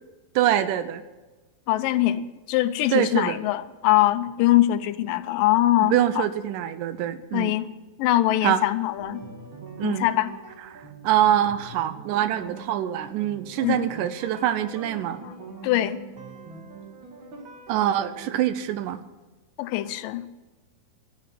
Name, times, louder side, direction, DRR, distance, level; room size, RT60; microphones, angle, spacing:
voice 1, 0.4-1.0 2.9-3.4 5.8-7.5 8.4-8.6 9.8-10.1 10.7-15.2 17.7-19.0, right 11 dB, 80° right, 2.1 m, -24 dB
voice 2, 1.7-6.3 7.3-7.7 8.0-9.2 9.8-10.3 13.6-13.9 15.2-15.4 15.6-16.0 19.6-20.3, left 15 dB, 80° left, 2.3 m, -23 dB
sound 1, 9.0-18.4, right 4 dB, 40° right, 2.3 m, -43 dB
12.5 x 9.6 x 7.6 m
omnidirectional pair, 3.9 m